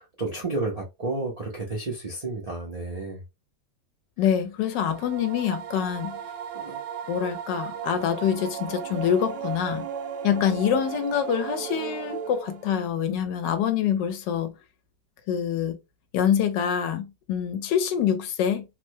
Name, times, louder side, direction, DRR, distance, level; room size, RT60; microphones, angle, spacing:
voice 1, 0.0-3.2 6.5-6.8, right 2 dB, 50° right, 0.4 m, -31 dB
voice 2, 4.2-6.2 7.1-9.9 10.2-14.5 15.3-15.8 16.1-18.6, left 8 dB, 80° left, 1.3 m, -25 dB
sound 1, 4.6-12.8, right 8 dB, 80° right, 1.3 m, -36 dB
3.3 x 2.1 x 3.1 m
omnidirectional pair, 1.9 m